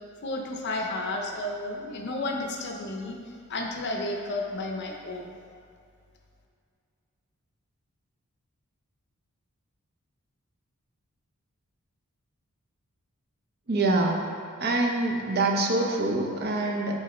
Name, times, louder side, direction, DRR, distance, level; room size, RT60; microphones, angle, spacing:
voice 1, 0.2-3.2 3.5-5.3, left 2 dB, 50° left, 2 dB, 0.6 m, -32 dB
voice 2, 13.7-14.2 14.6-17.0, right 2 dB, 45° right, 1 dB, 0.6 m, -25 dB
6.3 x 3.7 x 4.2 m, 2.4 s
head